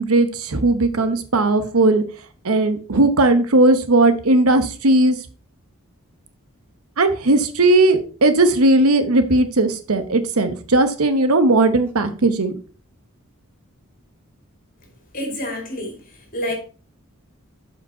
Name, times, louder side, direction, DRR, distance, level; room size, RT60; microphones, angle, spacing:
voice 1, 0.0-2.0 2.4-5.1 7.0-12.5, right 2 dB, 85° right, 1.0 m, -17 dB
voice 2, 15.1-16.0 16.3-16.5, equal, 40° left, 2.5 m, -27 dB
7.3 x 5.1 x 4.3 m
head